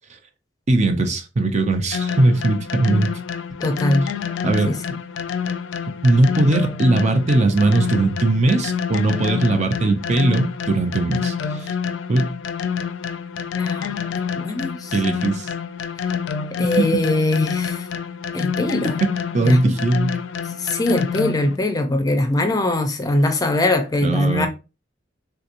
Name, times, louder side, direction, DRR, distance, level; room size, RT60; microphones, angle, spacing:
voice 1, 0.7-3.1 4.4-4.8 6.0-11.7 12.1-12.3 14.9-15.5 16.7-16.9 19.3-20.1 24.0-24.5, right 2 dB, 40° right, 0.5 m, -19 dB
sound 1, 1.9-21.6, left 7 dB, 75° left, 0.4 m, -27 dB
voice 2, 3.6-4.1 4.7-4.8 13.6-14.9 16.6-17.9 18.3-19.0 19.4-19.7 20.6-24.5, left 1 dB, 20° left, 0.5 m, -21 dB
3.5 x 2.8 x 2.5 m
head